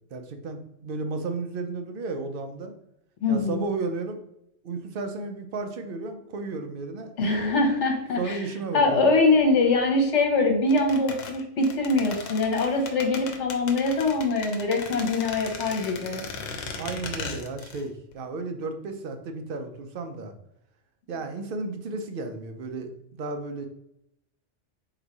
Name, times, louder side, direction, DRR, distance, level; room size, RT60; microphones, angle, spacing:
voice 1, 0.1-2.8 3.3-4.2 4.6-7.1 8.2-9.1 16.7-20.3 21.1-23.7, right 3 dB, 55° right, 6 dB, 0.7 m, -33 dB
voice 2, 3.2-3.6 7.2-8.4 8.7-16.2, left 3 dB, 70° left, 2 dB, 1.3 m, -23 dB
sound 1, 10.7-17.9 18.1-18.2, left 5 dB, 85° left, 1.0 m, -37 dB
3.9 x 2.6 x 4.6 m, 0.78 s
omnidirectional pair, 1.3 m